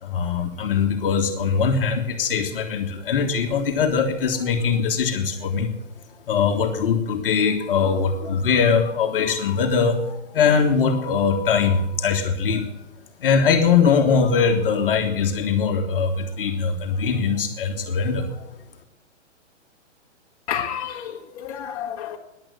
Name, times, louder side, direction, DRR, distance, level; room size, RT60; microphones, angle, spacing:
voice 1, 0.0-5.7 6.3-12.7 13.2-18.5, left 6 dB, 45° left, 1.6 m, -21 dB
voice 2, 20.5-22.2, left 9 dB, 30° left, 1.7 m, -30 dB
10.5 x 8.9 x 9.4 m
hypercardioid pair, 170°, 37 cm